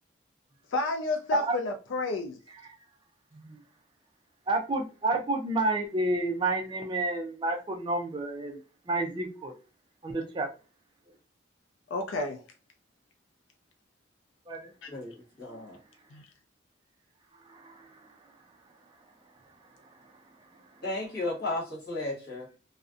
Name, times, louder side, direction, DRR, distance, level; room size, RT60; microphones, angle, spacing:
voice 1, 0.7-2.4 11.9-12.4 14.8-14.9 16.1-16.2, left 2 dB, 80° left, 0.4 m, -30 dB
voice 2, 4.5-8.6 8.9-9.5 10.0-10.5 14.5-14.7 15.5-15.6 17.5-17.9, right 2 dB, 25° right, 0.3 m, -30 dB
voice 3, 14.9-15.8 20.8-22.5, left 2 dB, 55° left, 1.1 m, -34 dB
2.5 x 2.0 x 2.4 m
head